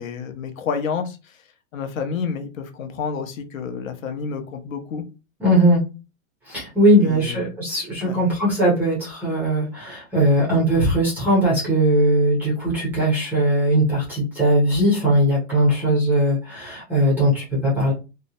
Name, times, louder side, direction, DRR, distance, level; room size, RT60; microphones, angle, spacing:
voice 1, 0.0-1.3 1.7-5.0 7.0-7.4 8.0-8.2, left 6 dB, 85° left, 6 dB, 0.8 m, -29 dB
voice 2, 5.4-5.8 6.5-17.9, right 1 dB, 5° right, -5 dB, 0.4 m, -19 dB
2.7 x 2.1 x 2.6 m, 0.30 s
supercardioid pair, 160°, 39 cm